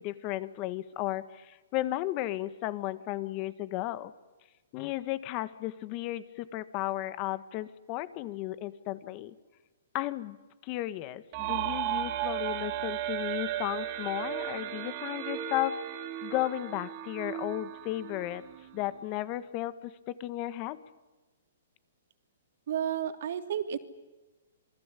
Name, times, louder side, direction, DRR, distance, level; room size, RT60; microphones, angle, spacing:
voice 1, 0.0-4.1 4.7-9.3 9.9-10.4 10.6-15.7 16.2-18.4 18.7-20.8, left 15 dB, 35° left, 14 dB, 1.6 m, -34 dB
sound 1, 11.3-18.9, right 12 dB, 35° right, 3.5 m, -35 dB
voice 2, 22.7-23.8, right 9 dB, 60° right, 8 dB, 3.0 m, -31 dB
27.5 x 21.0 x 8.5 m, 1.1 s
hypercardioid pair, 150°, 0 cm